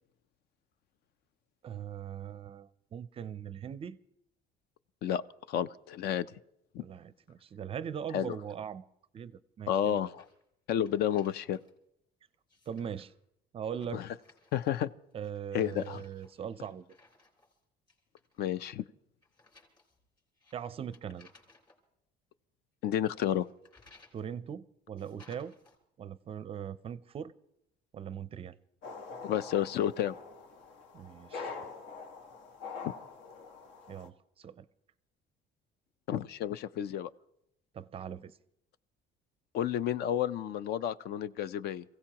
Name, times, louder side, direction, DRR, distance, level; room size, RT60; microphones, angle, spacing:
voice 1, 1.6-4.0 6.8-8.9 9.1-10.0 12.7-13.1 13.5-14.0 15.1-16.9 20.5-21.3 24.1-25.5 26.0-27.3 27.9-28.6 30.9-31.5 33.9-34.7 37.7-38.4, right 8 dB, 30° right, 0.5 m, -40 dB
voice 2, 5.5-6.3 6.7-6.8 8.1-8.4 9.7-10.2 10.7-11.6 13.9-14.1 14.5-14.9 15.5-16.0 18.4-18.8 22.8-23.5 29.2-30.1 36.1-37.1 39.5-41.8, left 10 dB, 60° left, 0.6 m, -31 dB
sound 1, 9.7-10.4 10.7-11.7 12.3-13.1 14.1-14.9 15.2-17.6 17.9-18.4 19.2-21.8 23.2-24.3 25.0-25.8, left 3 dB, 25° left, 3.9 m, -62 dB
sound 2, 28.8-34.1, left 4 dB, 80° left, 1.7 m, -45 dB
27.5 x 16.0 x 2.9 m
cardioid pair, 160°, 19 cm